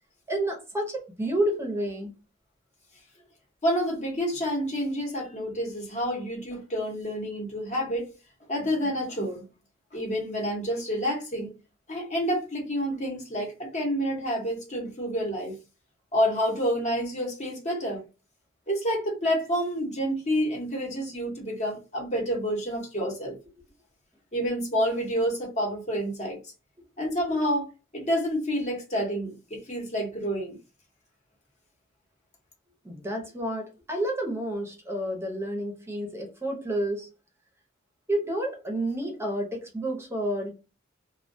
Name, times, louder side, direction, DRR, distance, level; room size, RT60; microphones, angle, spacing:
voice 1, 0.3-2.1 32.8-37.1 38.1-40.5, right 1 dB, 15° right, 0.7 m, -30 dB
voice 2, 3.6-8.1 8.5-9.4 9.9-11.5 11.9-15.6 16.1-18.0 18.7-23.4 24.3-26.4 27.0-30.6, equal, 35° left, 0.8 m, -28 dB
2.2 x 2.2 x 2.5 m
head